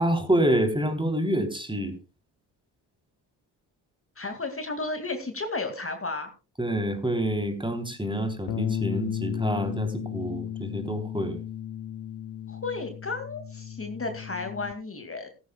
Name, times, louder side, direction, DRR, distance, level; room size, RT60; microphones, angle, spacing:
voice 1, 0.0-1.9 6.6-11.4, right 1 dB, 10° right, 6 dB, 3.6 m, -27 dB
voice 2, 4.2-6.3 12.5-15.3, left 3 dB, 25° left, 6 dB, 2.4 m, -33 dB
Bass guitar, 8.5-14.7, left 9 dB, 45° left, 0.8 m, -34 dB
16.0 x 15.5 x 2.3 m, 0.31 s
hypercardioid pair, 45°, 50 cm